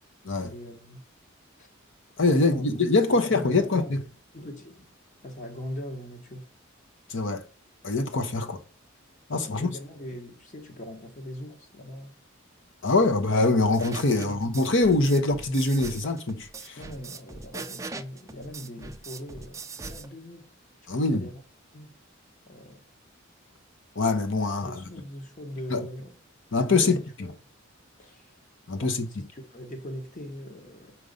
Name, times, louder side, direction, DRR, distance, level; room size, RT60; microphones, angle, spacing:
voice 1, 0.4-1.1 1.6-1.7 2.3-2.7 3.1-4.0 4.3-4.9 5.2-6.5 9.4-12.1 14.1-14.4 16.8-20.5 20.9-21.4 21.7-22.0 22.5-22.8 24.6-26.1 26.5-27.4 28.0-28.3 28.7-28.9 29.3-31.0, equal, 40° left, 1.2 m, -41 dB
voice 2, 2.2-4.0 7.1-7.4 7.8-8.6 9.3-9.7 12.8-16.8 20.9-21.3 24.0-24.8 25.7-25.8 26.5-27.3 28.7-29.3, left 3 dB, 65° left, 0.9 m, -24 dB
sound 1, 13.7-20.1, right 4 dB, 15° right, 0.4 m, -41 dB
5.0 x 4.7 x 5.4 m
head